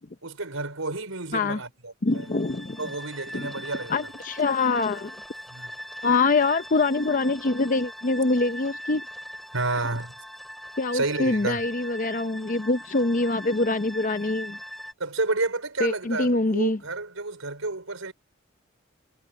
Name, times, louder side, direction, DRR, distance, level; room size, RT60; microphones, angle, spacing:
voice 1, 0.2-2.3 2.8-4.0 5.5-5.8 9.5-10.1 10.9-11.6 15.0-18.1, right 3 dB, 85° right, 4.9 m, -30 dB
voice 2, 2.0-2.8 3.3-3.5 3.9-5.2 6.0-9.0 10.8-14.6 15.8-16.8, left 3 dB, 40° left, 0.6 m, -24 dB
sound 1, 2.1-14.9, equal, ahead, 4.3 m, -41 dB
head